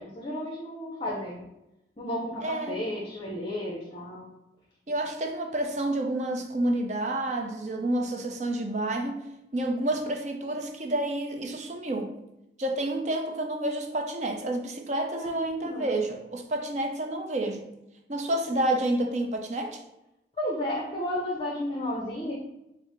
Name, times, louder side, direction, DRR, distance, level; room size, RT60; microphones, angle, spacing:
voice 1, 0.0-1.5 2.0-4.3 15.1-16.0 20.4-22.3, left 1 dB, 30° left, -3 dB, 0.6 m, -33 dB
voice 2, 2.4-2.8 4.9-9.2 9.5-12.1 12.6-17.7 18.1-19.8, right 1 dB, 40° right, 3 dB, 0.5 m, -29 dB
4.5 x 2.0 x 4.6 m, 0.88 s
head